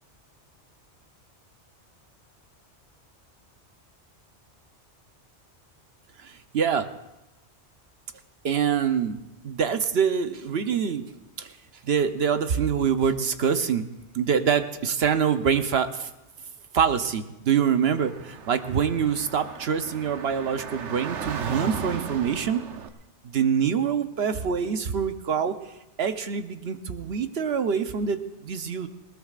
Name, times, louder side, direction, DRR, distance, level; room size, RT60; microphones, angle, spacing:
voice 1, 6.2-6.9 8.4-11.1 11.4-11.5 11.8-13.9 14.1-16.1 16.7-22.6 23.2-25.5 26.0-28.9, right 7 dB, 65° right, 8 dB, 1.0 m, -25 dB
Car / Traffic noise roadway noise, 17.8-22.9, right 6 dB, 85° right, 1.2 m, -36 dB
20.0 x 19.5 x 2.5 m, 0.94 s
omnidirectional pair, 1.2 m